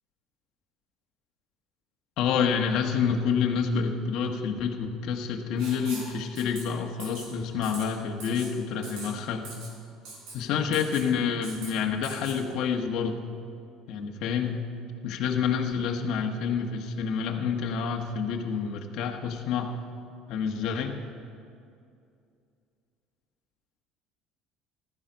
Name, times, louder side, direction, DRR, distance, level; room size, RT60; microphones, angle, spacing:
voice 1, 2.2-9.5 10.3-13.2 13.9-14.6 15.0-19.7 20.3-21.0, left 6 dB, 70° left, 3 dB, 1.3 m, -28 dB
Writing, 5.6-6.1 6.4-6.6 7.0-7.3 7.6-7.8 8.2-8.5 8.8-9.1 9.4-9.7 10.1-10.3 10.7-11.1 11.4-11.7 12.0-12.4, right 3 dB, 80° right, 4.2 m, -42 dB
15.0 x 13.0 x 5.2 m, 2.4 s
cardioid pair, 110°, 0 cm